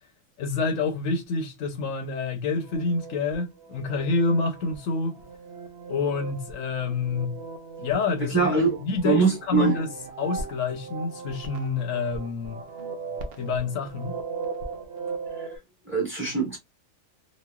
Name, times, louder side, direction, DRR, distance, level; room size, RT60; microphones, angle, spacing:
voice 1, 0.4-5.1 5.9-7.4 7.8-9.9 10.2-12.6 13.4-14.2, left 4 dB, 85° left, 1.1 m, -27 dB
sound 1, 2.6-15.6, right 4 dB, 60° right, 0.7 m, -38 dB
voice 2, 8.2-8.8 9.0-9.8 12.8-12.9 15.4-15.5 15.9-16.6, right 4 dB, 10° right, 1.2 m, -23 dB
3.0 x 2.2 x 2.2 m
omnidirectional pair, 1.3 m